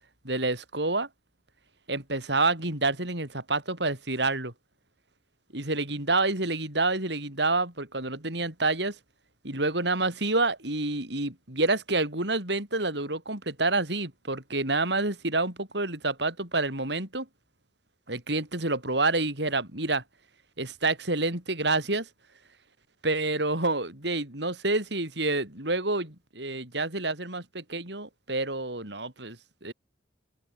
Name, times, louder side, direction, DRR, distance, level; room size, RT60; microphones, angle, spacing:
voice 1, 0.2-1.1 1.9-4.5 5.5-9.0 9.4-17.3 18.1-20.0 20.6-22.1 23.0-29.4 29.6-29.7, right 2 dB, 70° right, 7.8 m, -28 dB
open air
head